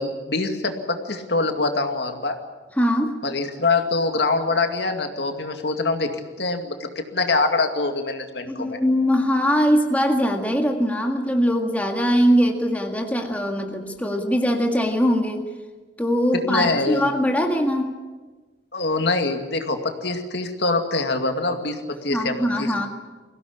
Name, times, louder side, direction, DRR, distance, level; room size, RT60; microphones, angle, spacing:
voice 1, 0.0-2.4 3.2-6.1 6.4-8.8 16.3-17.1 18.7-22.9, left 3 dB, 65° left, 5 dB, 2.3 m, -24 dB
voice 2, 2.8-3.2 8.4-15.4 16.0-17.9 22.1-22.9, equal, 10° left, 3 dB, 1.8 m, -21 dB
23.0 x 16.5 x 9.9 m, 1.3 s
head